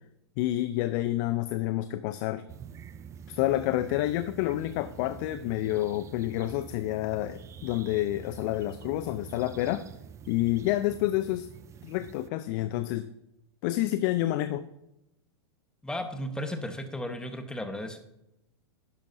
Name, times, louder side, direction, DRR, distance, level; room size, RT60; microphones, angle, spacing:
voice 1, 0.4-2.4 3.3-9.8 10.3-11.5 11.8-13.1 13.6-14.7, left 15 dB, 50° left, 12 dB, 0.5 m, -29 dB
sound 1, 2.5-12.3, right 7 dB, 20° right, 0.4 m, -46 dB
voice 2, 15.8-18.0, left 1 dB, 5° left, 7 dB, 1.2 m, -35 dB
11.5 x 10.5 x 2.7 m, 0.86 s
hypercardioid pair, 105°, 14 cm